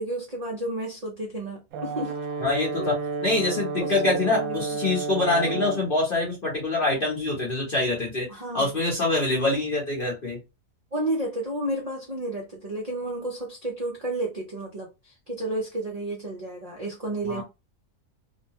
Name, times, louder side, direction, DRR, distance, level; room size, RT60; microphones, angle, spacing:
voice 1, 0.0-2.2 2.8-2.9 3.8-4.7 5.4-5.7 8.3-8.7 10.9-17.4, right 1 dB, 45° right, 0.5 m, -32 dB
Brass instrument, 1.7-5.9, right 4 dB, 70° right, 1.0 m, -31 dB
voice 2, 2.4-2.9 3.2-8.3 8.5-10.4 17.3-17.4, left 2 dB, 40° left, 1.0 m, -25 dB
2.7 x 2.2 x 2.8 m
omnidirectional pair, 1.6 m